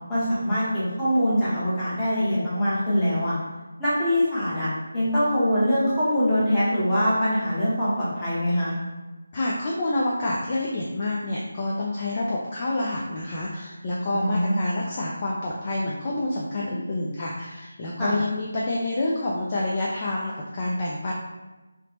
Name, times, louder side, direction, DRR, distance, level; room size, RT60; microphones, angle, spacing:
voice 1, 0.1-3.4 3.8-8.7 14.1-14.5 18.0-18.2, equal, 10° left, -12 dB, 0.8 m, -23 dB
voice 2, 9.3-21.1, left 2 dB, 25° left, -4 dB, 0.3 m, -28 dB
3.2 x 2.9 x 2.9 m, 1.1 s
figure-of-eight pair, 175°, 0 cm